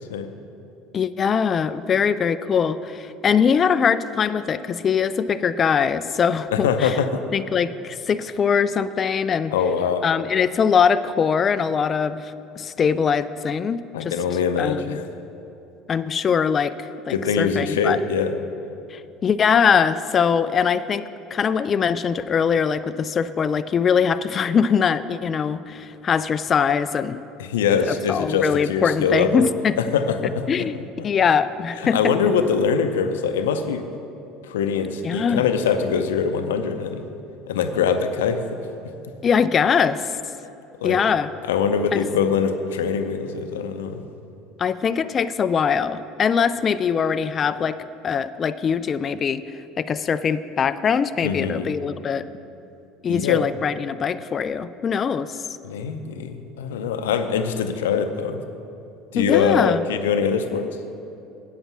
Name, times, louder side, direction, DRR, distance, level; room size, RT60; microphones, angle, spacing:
voice 1, 0.9-7.0 7.3-9.5 10.0-14.2 14.6-15.0 15.9-18.0 18.9-27.2 27.9-29.8 30.5-30.8 31.0-32.1 35.0-35.4 39.2-40.0 40.8-41.3 41.9-42.0 44.6-47.8 48.0-49.4 49.8-52.3 53.0-55.4 59.2-59.8, left 6 dB, 40° left, 13 dB, 0.3 m, -22 dB
voice 2, 6.5-7.2 9.5-10.0 13.9-15.1 17.1-18.4 27.4-29.5 29.8-30.8 31.8-33.8 34.4-37.0 37.5-38.4 40.8-41.0 41.4-44.0 51.2-51.7 53.1-53.4 55.6-58.4 59.1-60.7, left 6 dB, 80° left, 8 dB, 0.6 m, -23 dB
8.7 x 8.0 x 6.0 m, 2.8 s
hypercardioid pair, 70°, 0 cm